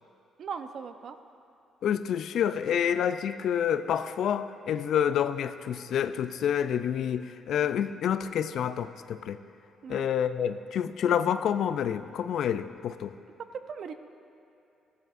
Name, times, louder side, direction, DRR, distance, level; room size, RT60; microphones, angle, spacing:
voice 1, 0.4-1.2 9.8-10.1 13.7-13.9, right 6 dB, 60° right, 8 dB, 0.6 m, -38 dB
voice 2, 1.8-9.4 9.9-13.1, left 9 dB, 70° left, 12 dB, 0.4 m, -28 dB
15.5 x 12.0 x 2.5 m, 2.6 s
cardioid pair, 90°, 0 cm